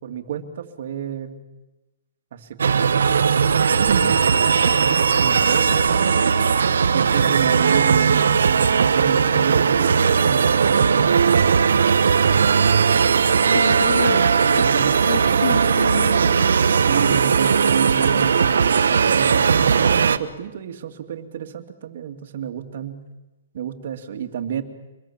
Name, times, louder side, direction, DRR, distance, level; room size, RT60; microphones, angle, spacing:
voice 1, 0.0-1.4 2.3-3.2 3.8-6.3 6.9-11.4 14.5-15.4 16.8-23.0 23.5-24.6, right 8 dB, 55° right, 6 dB, 2.4 m, -30 dB
sound 1, 2.6-20.2, right 6 dB, 85° right, 1.2 m, -18 dB
voice 2, 13.5-14.3 14.6-14.7 15.1-16.5, left 6 dB, 70° left, 7 dB, 2.6 m, -28 dB
25.5 x 21.5 x 7.3 m, 1.1 s
hypercardioid pair, 160°, 0 cm